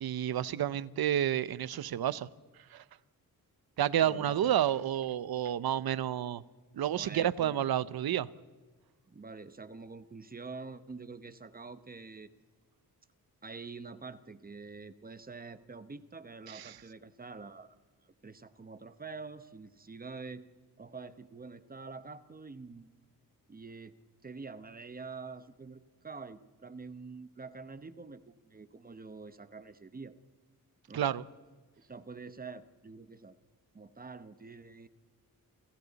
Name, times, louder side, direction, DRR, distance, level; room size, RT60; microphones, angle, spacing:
voice 1, 0.0-2.3 2.7-2.8 3.8-6.4 6.7-8.3 16.5-16.7 30.9-31.2, right 11 dB, 85° right, 17 dB, 0.8 m, -30 dB
voice 2, 4.0-4.6 6.9-7.6 9.1-12.3 13.4-17.8 18.0-20.4 20.8-22.9 23.5-23.9 24.2-30.1 30.9-31.1 31.8-33.4 33.7-34.9, right 4 dB, 25° right, 12 dB, 0.9 m, -46 dB
29.0 x 28.0 x 4.1 m, 1.3 s
wide cardioid pair, 160°, 36 cm